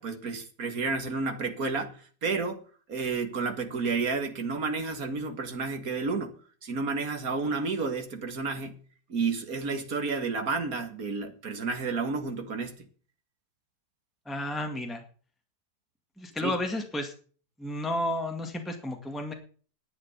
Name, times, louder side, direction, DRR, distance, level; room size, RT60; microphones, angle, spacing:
voice 1, 0.0-2.6 2.9-6.3 6.6-8.8 9.1-12.9 16.4-16.5, right 4 dB, 65° right, 2.4 m, -31 dB
voice 2, 14.3-15.0 16.2-17.1 17.6-19.3, left 1 dB, ahead, 1.9 m, -32 dB
11.5 x 8.6 x 8.3 m
omnidirectional pair, 1.7 m